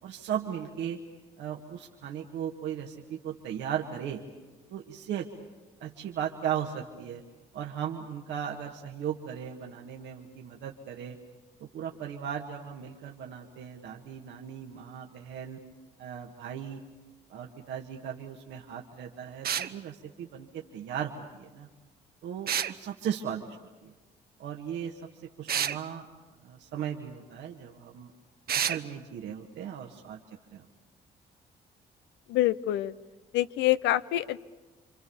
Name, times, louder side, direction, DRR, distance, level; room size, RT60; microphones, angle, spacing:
voice 1, 0.0-1.0 1.4-4.2 4.7-5.3 5.8-7.2 7.5-11.2 11.6-15.6 16.0-16.8 17.3-21.7 22.2-23.6 23.8-23.9 24.4-25.0 25.4-26.1 26.4-28.1 28.5-30.2 30.5-30.7, right 9 dB, 80° right, 1 dB, 1.7 m, -37 dB
sound 1, 19.4-19.7 22.5-22.7 25.5-25.8 28.5-28.8, right 9 dB, 60° right, 1.0 m, -28 dB
voice 2, 32.3-32.9 33.3-34.4, left 15 dB, 90° left, 15 dB, 0.7 m, -26 dB
28.5 x 25.5 x 7.1 m, 1.2 s
supercardioid pair, 70°, 18 cm